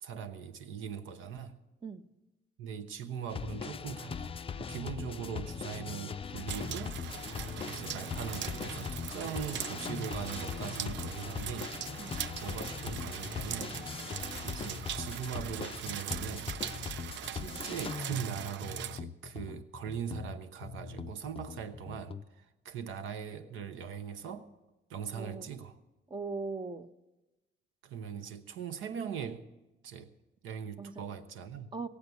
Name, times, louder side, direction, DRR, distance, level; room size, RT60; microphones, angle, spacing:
voice 1, 0.0-1.6 2.6-4.3 4.6-7.0 7.4-11.8 12.4-13.8 14.4-16.6 17.3-24.5 24.9-25.8 27.8-29.5 29.8-30.1 30.4-31.7, right 7 dB, 85° right, 11 dB, 1.0 m, -41 dB
sound 1, 3.3-22.2, left 6 dB, 30° left, 0.4 m, -40 dB
sound 2, 6.5-19.0, right 11 dB, 65° right, 0.4 m, -41 dB
voice 2, 25.1-25.5 26.1-26.9 30.8-31.0 31.7-31.9, right 4 dB, 25° right, 10 dB, 0.7 m, -40 dB
17.0 x 8.3 x 8.1 m, 1.1 s
cardioid pair, 90°, 20 cm